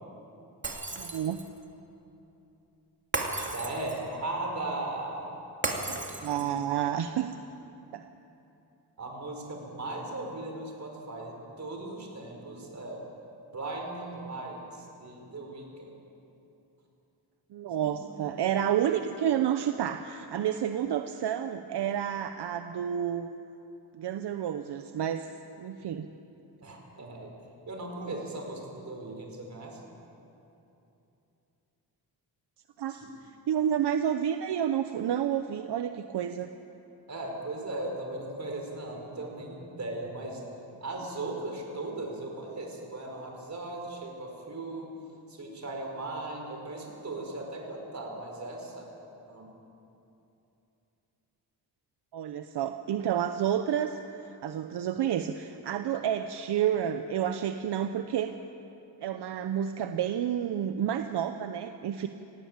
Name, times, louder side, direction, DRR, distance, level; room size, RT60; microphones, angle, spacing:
Shatter, 0.6-1.6 3.1-4.1 5.6-6.6, right 2 dB, 30° right, 2.6 m, -34 dB
voice 1, 0.9-1.4 5.9-7.3 7.9-8.1 17.5-23.3 23.9-25.3 25.6-26.1 32.8-33.0 33.5-36.5 52.1-58.3 59.0-62.1, right 9 dB, 75° right, 8 dB, 0.8 m, -30 dB
voice 2, 3.3-5.5 6.2-6.6 9.0-13.0 13.5-16.0 18.0-18.2 26.6-27.3 27.7-29.8 32.9-33.1 37.1-40.4 40.8-44.9 45.3-48.9 49.3-49.5, right 2 dB, 45° right, 1 dB, 4.7 m, -38 dB
18.0 x 17.5 x 8.8 m, 2.9 s
cardioid pair, 105°, 40 cm